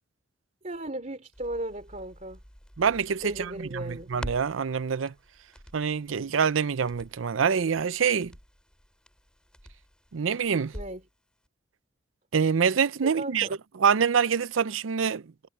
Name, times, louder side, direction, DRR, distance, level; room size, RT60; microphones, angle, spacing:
voice 1, 0.6-2.4 3.2-4.1 10.7-11.0 13.0-13.5, right 1 dB, 40° right, 3.0 m, -36 dB
Crackle, 1.3-11.1 11.4-11.5, equal, 5° left, 4.6 m, -47 dB
voice 2, 2.8-5.1 5.7-8.3 10.1-10.7 12.3-13.5 13.8-15.3, right 6 dB, 85° right, 0.5 m, -25 dB
head